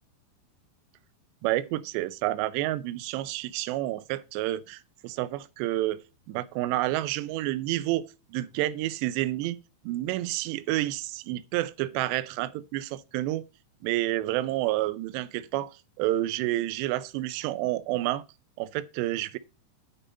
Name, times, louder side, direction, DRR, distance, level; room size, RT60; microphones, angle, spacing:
voice 1, 1.4-6.0 6.3-9.6 9.8-13.4 13.8-18.2 18.6-19.4, right 15 dB, 85° right, 2.5 m, -29 dB
8.5 x 5.5 x 5.1 m
omnidirectional pair, 5.7 m